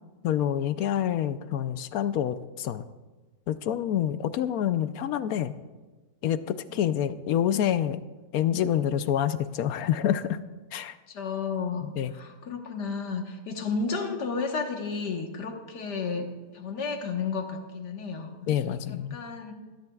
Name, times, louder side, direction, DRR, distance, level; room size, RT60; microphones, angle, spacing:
voice 1, 0.2-2.8 3.5-5.5 6.2-8.0 8.3-10.4 10.7-10.9 11.8-12.1 18.4-19.2, left 10 dB, 70° left, 12 dB, 1.0 m, -27 dB
voice 2, 11.1-16.3 16.5-18.3 19.1-19.5, left 5 dB, 85° left, 3 dB, 1.9 m, -32 dB
21.0 x 13.0 x 2.4 m, 1.3 s
omnidirectional pair, 1.7 m